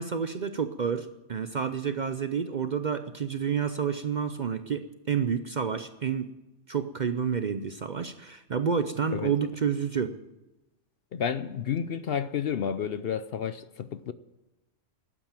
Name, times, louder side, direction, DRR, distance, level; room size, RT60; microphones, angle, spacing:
voice 1, 0.0-6.3 6.7-10.1, right 7 dB, 50° right, 0.6 m, -29 dB
voice 2, 11.1-14.1, left 8 dB, 60° left, 0.7 m, -31 dB
12.0 x 9.1 x 8.9 m
omnidirectional pair, 1.3 m